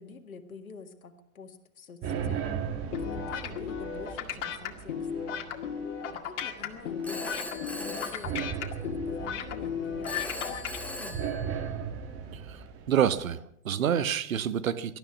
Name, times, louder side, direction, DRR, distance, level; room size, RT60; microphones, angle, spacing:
voice 1, 0.0-2.5 3.0-5.1 6.1-11.3, left 5 dB, 75° left, 6 dB, 1.9 m, -47 dB
sound 1, 2.0-13.4, right 7 dB, 35° right, 2.1 m, -38 dB
sound 2, 2.9-10.8, left 7 dB, 55° left, 2.1 m, -35 dB
Telephone, 7.0-9.0 10.0-12.0, left 1 dB, 5° left, 2.0 m, -40 dB
voice 2, 12.9-15.0, right 9 dB, 70° right, 14 dB, 1.2 m, -28 dB
19.0 x 12.5 x 5.9 m, 0.67 s
figure-of-eight pair, 100°, 42 cm